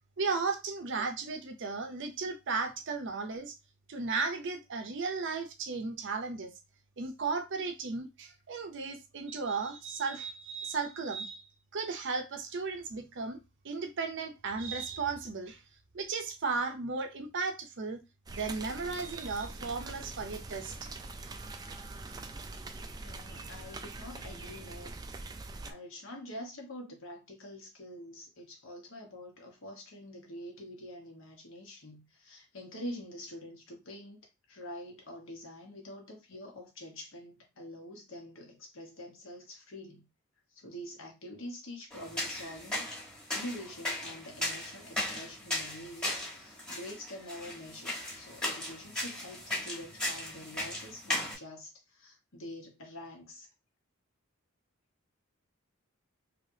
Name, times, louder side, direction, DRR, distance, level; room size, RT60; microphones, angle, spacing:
voice 1, 0.2-3.6 3.9-6.5 7.0-11.4 11.7-13.4 13.6-15.6 15.9-18.0 18.3-20.7, right 4 dB, 60° right, 0.6 m, -35 dB
sound 1, 18.3-25.7, right 3 dB, 20° right, 0.3 m, -43 dB
voice 2, 23.0-25.0 25.7-34.2 34.5-40.1 40.5-42.9 43.3-53.5, left 1 dB, 65° left, 1.2 m, -46 dB
sound 2, 41.9-51.3, left 1 dB, 5° left, 1.2 m, -37 dB
3.3 x 2.8 x 2.7 m
head